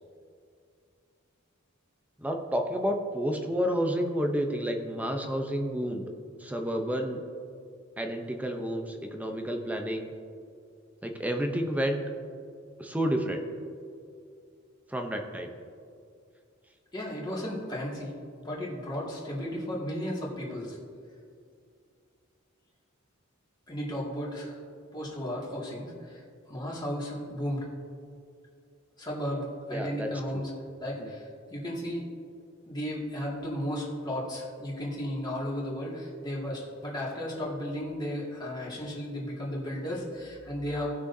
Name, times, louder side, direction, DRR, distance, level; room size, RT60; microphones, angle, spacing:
voice 1, 2.2-6.0 6.4-7.2 8.0-10.1 11.0-12.0 12.8-13.4 14.9-15.5 29.7-30.5 31.0-31.1, equal, 5° right, 4 dB, 0.7 m, -30 dB
voice 2, 16.9-18.1 18.4-20.8 23.7-24.6 24.9-26.2 26.5-27.7 29.0-30.5 30.8-32.1 32.7-41.0, equal, 20° left, -5 dB, 2.2 m, -34 dB
18.5 x 6.2 x 2.7 m, 2.4 s
head